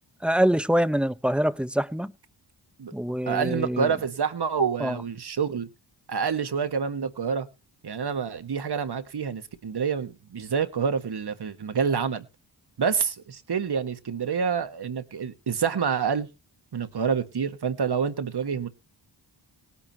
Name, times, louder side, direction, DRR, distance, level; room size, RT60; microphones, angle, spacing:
voice 1, 0.2-2.1 2.9-3.9 4.8-5.0, equal, ahead, 0.9 m, -25 dB
voice 2, 3.3-5.7 6.1-7.5 7.8-12.2 12.8-16.3 16.7-18.7, right 6 dB, 55° right, 1.6 m, -27 dB
18.5 x 9.9 x 2.9 m
cardioid pair, 45°, 46 cm